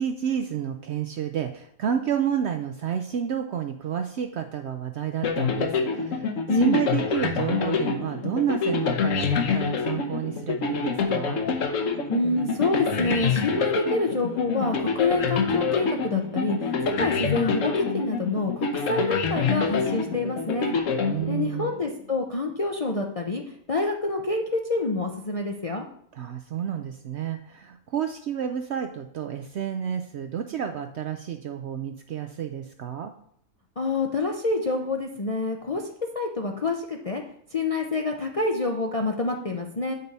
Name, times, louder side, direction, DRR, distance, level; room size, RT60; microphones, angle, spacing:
voice 1, 0.0-11.4 21.0-21.7 26.1-33.1, right 8 dB, 65° right, 5 dB, 0.7 m, -30 dB
sound 1, 5.2-21.8, left 5 dB, 65° left, 1.1 m, -26 dB
voice 2, 12.1-20.7 21.3-23.4 23.7-25.8 33.8-35.8 36.1-37.2 37.5-39.9, left 2 dB, 50° left, 1 dB, 0.4 m, -27 dB
8.0 x 5.4 x 4.1 m, 0.68 s
omnidirectional pair, 1.5 m